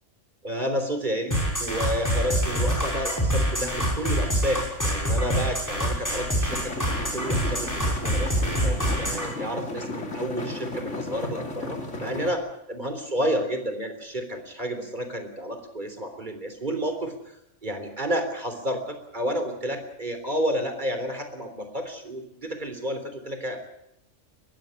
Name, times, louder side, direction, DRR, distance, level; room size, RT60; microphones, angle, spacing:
voice 1, 0.4-6.7 7.1-17.1 17.6-23.6, equal, 40° right, 7 dB, 3.7 m, -30 dB
sound 1, 1.3-9.3, equal, 15° left, 6.0 m, -25 dB
sound 2, 6.5-12.3, left 2 dB, 75° left, 3.1 m, -35 dB
21.5 x 15.0 x 9.9 m, 0.84 s
omnidirectional pair, 1.2 m